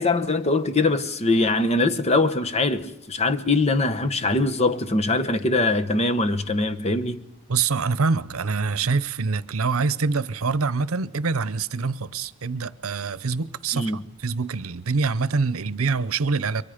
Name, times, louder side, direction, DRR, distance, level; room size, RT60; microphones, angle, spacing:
voice 1, 0.0-7.2 13.7-14.0, left 2 dB, 30° left, 1.0 m, -22 dB
voice 2, 7.5-13.9 14.2-16.6, right 4 dB, 85° right, 0.8 m, -25 dB
30.0 x 23.5 x 5.1 m
head